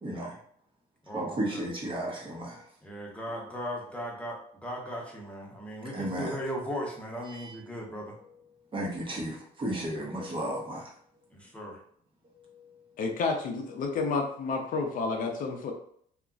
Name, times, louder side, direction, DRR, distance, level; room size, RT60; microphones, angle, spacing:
voice 1, 0.0-0.4 1.1-2.7 5.8-6.4 7.3-7.5 8.1-8.2 8.7-10.9 12.2-12.8, right 1 dB, 30° right, -2 dB, 0.9 m, -34 dB
voice 2, 1.1-1.7 2.8-8.1 11.3-11.8, equal, 5° left, -2 dB, 0.8 m, -37 dB
voice 3, 13.0-15.7, left 4 dB, 55° left, 2 dB, 0.5 m, -30 dB
2.8 x 2.4 x 2.4 m, 0.63 s
cardioid pair, 110°, 17 cm